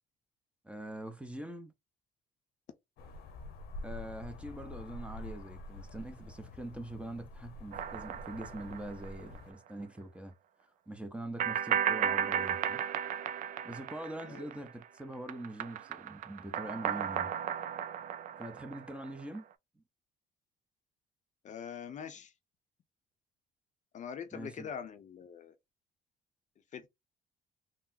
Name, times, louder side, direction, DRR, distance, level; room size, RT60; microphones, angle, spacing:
voice 1, 0.6-1.7 3.8-10.3 10.9-12.8 13.6-17.3 18.4-19.4 19.8-19.9 24.3-24.7, right 1 dB, 5° right, 0.6 m, -43 dB
sound 1, 3.0-9.5, left 2 dB, 75° left, 0.8 m, -47 dB
sound 2, 7.7-9.4 9.7-9.8 11.4-14.9 15.1-19.4, right 9 dB, 50° right, 0.4 m, -35 dB
voice 2, 21.4-22.3 23.9-25.5 26.7-26.9, left 7 dB, 45° left, 0.6 m, -43 dB
3.9 x 2.0 x 2.6 m
cardioid pair, 110°, 17 cm